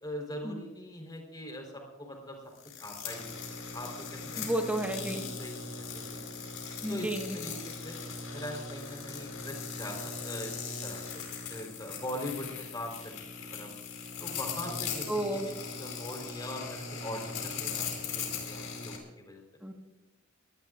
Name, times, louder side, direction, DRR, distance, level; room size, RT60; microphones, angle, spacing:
voice 1, 0.0-2.4 2.8-3.4 3.7-4.4 5.1-6.4 6.9-8.0 8.3-10.6 10.8-11.2 11.5-13.7 14.2-15.5 15.8-19.4, left 1 dB, 20° left, 2 dB, 4.1 m, -42 dB
sound 1, 2.6-19.0, left 5 dB, 80° left, 4.7 m, -39 dB
voice 2, 4.4-5.2 6.8-7.4 15.1-15.5 19.6-19.7, right 1 dB, 5° right, 1 dB, 1.5 m, -32 dB
24.0 x 19.0 x 2.5 m, 1.0 s
head